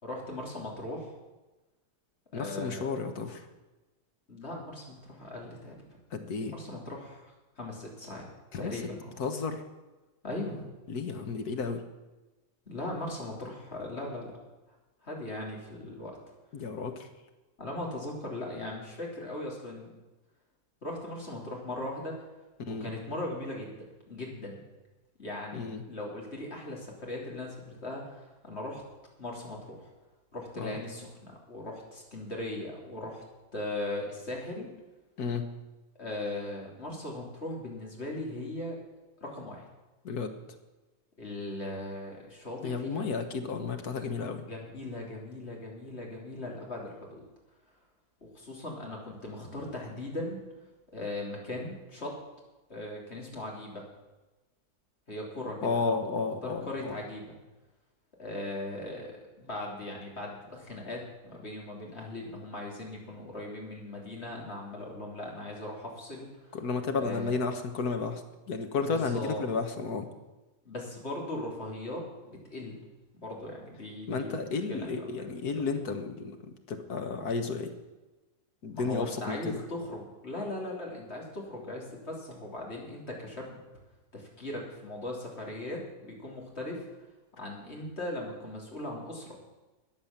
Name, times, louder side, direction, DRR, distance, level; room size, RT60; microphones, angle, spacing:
voice 1, 0.0-1.1 2.3-2.8 4.3-6.0 6.5-7.2 7.6-8.3 8.6-9.1 10.2-10.6 12.7-14.3 15.0-16.2 17.6-19.9 20.8-22.1 22.6-24.6 25.2-28.8 29.2-29.9 30.3-33.2 33.5-34.7 36.0-38.8 39.2-39.7 41.2-43.1 44.5-47.2 48.2-50.4 50.9-52.1 52.7-53.9 55.1-56.3 56.7-57.3 58.2-59.1 59.4-66.3 66.9-67.3 68.8-69.4 70.7-72.8 73.1-74.9 78.7-83.6 84.1-86.8 87.4-89.3, left 1 dB, 40° left, -2 dB, 3.6 m, -39 dB
voice 2, 2.3-3.5 6.1-6.5 8.5-8.7 9.2-9.6 10.9-11.8 16.5-17.1 22.7-22.9 25.5-25.8 30.6-30.8 35.2-35.5 40.0-40.4 42.6-44.4 55.6-57.0 66.5-68.2 68.5-70.1 74.1-77.7 78.6-79.6, left 4 dB, 80° left, 6 dB, 1.9 m, -32 dB
13.5 x 9.8 x 7.2 m, 1.1 s
omnidirectional pair, 1.7 m